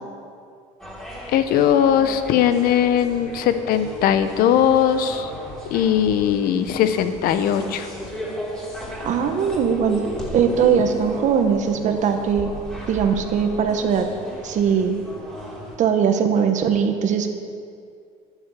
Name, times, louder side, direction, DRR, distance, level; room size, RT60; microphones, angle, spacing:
sound 1, 0.8-15.8, equal, 5° left, 3.1 m, -35 dB
voice 1, 1.3-5.3 5.7-7.9, left 9 dB, 65° left, 10 dB, 0.9 m, -19 dB
voice 2, 9.0-10.0 10.3-12.5 12.9-14.1 14.4-15.0 15.8-17.3, right 7 dB, 45° right, 6 dB, 1.3 m, -20 dB
9.9 x 9.7 x 6.8 m, 2.3 s
cardioid pair, 120°, 17 cm